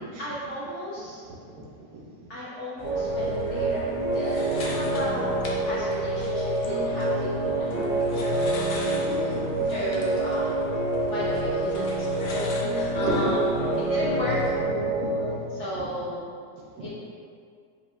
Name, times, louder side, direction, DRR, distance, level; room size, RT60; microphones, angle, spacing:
voice 1, 0.2-1.2 2.3-5.3 5.6-9.1 9.7-10.7 11.1-13.5 13.9-14.4 15.5-16.3 16.8-16.9, equal, 60° left, -8 dB, 0.8 m, -35 dB
voice 2, 1.2-1.5 1.9-2.0 4.4-4.8 6.6-6.7 7.4-9.7 10.8-11.2 13.0-13.3 13.6-13.7 14.6-15.9 16.8-16.9, right 2 dB, 70° right, -2 dB, 1.2 m, -36 dB
sound 1, 2.8-14.6, left 2 dB, 85° left, 0.5 m, -41 dB
sound 2, 2.8-15.3, right 2 dB, 35° right, 0.5 m, -27 dB
5.1 x 3.5 x 2.4 m, 2.2 s
omnidirectional pair, 1.8 m